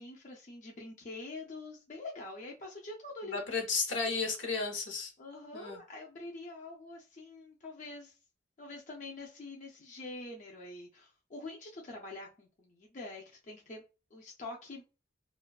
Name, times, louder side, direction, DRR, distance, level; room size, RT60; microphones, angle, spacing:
voice 1, 0.0-3.4 5.2-8.2 8.6-13.8 14.1-14.8, left 2 dB, 40° left, 0.4 m, -45 dB
voice 2, 3.2-5.1 5.5-5.8, left 4 dB, 75° left, 0.8 m, -33 dB
2.4 x 2.2 x 2.2 m
head